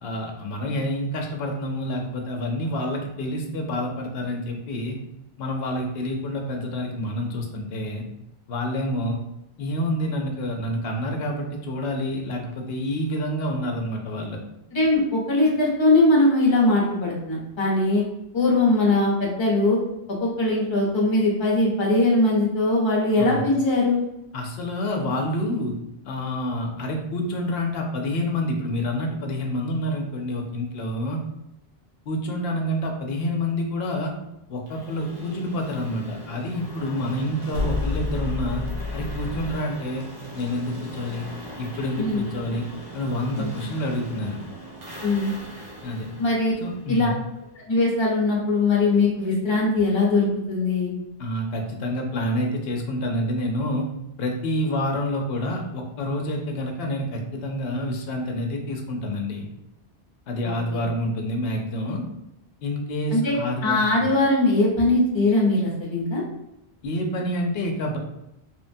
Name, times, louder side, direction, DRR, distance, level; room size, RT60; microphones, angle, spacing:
voice 1, 0.0-5.0 5.4-8.0 8.5-9.2 9.6-14.4 23.2-23.5 24.3-25.7 26.0-31.2 32.1-34.1 34.5-38.6 38.9-40.1 40.3-41.3 41.6-42.6 42.9-44.4 45.8-46.1 46.6-47.2 51.2-53.9 54.2-59.5 60.3-62.0 62.6-63.8 66.8-68.0, left 1 dB, 70° left, 1 dB, 0.8 m, -28 dB
voice 2, 14.7-15.0 15.3-18.0 18.3-19.8 20.2-24.0 42.0-42.2 43.4-43.5 45.0-45.3 46.2-46.5 46.9-47.1 47.7-50.9 60.4-60.8 63.1-63.3 63.6-66.2, left 2 dB, 30° left, -4 dB, 0.7 m, -21 dB
sound 1, 34.7-47.5, right 1 dB, 50° right, 0.6 m, -41 dB
sound 2, 37.5-39.6, left 4 dB, 75° right, 1.1 m, -28 dB
3.1 x 2.1 x 2.6 m, 0.87 s
omnidirectional pair, 1.1 m